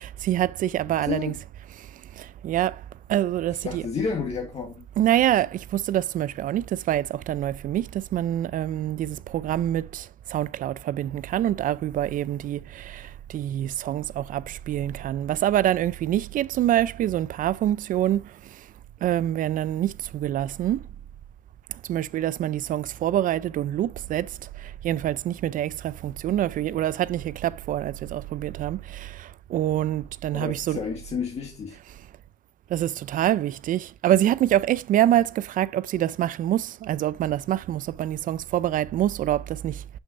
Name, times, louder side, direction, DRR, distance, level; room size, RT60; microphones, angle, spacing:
voice 1, 0.0-1.3 2.2-2.8 3.1-3.8 5.0-18.2 19.0-20.8 21.9-24.3 24.6-30.8 32.7-39.8, right 12 dB, 55° right, 0.4 m, -26 dB
voice 2, 0.9-1.4 3.5-4.8 30.3-31.8, left 5 dB, 40° left, 1.4 m, -31 dB
7.1 x 6.5 x 2.5 m
cardioid pair, 110°, 17 cm